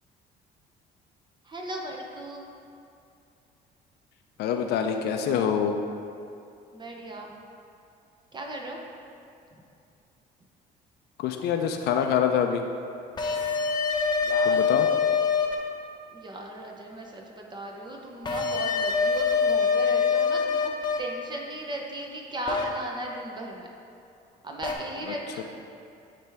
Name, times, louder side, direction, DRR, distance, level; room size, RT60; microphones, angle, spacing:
voice 1, 1.4-2.5 6.7-7.3 8.3-8.8 14.2-14.7 16.1-23.7 24.4-25.4, right 1 dB, 25° right, 0 dB, 0.7 m, -37 dB
voice 2, 4.4-5.8 11.2-12.6 14.5-14.9 25.1-25.4, left 8 dB, 75° left, 5 dB, 0.4 m, -26 dB
sound 1, 13.2-15.5 18.2-21.0 22.5-22.6 24.6-24.7, left 5 dB, 25° left, 0.7 m, -24 dB
9.4 x 3.4 x 3.4 m, 2.5 s
cardioid pair, 110°, 17 cm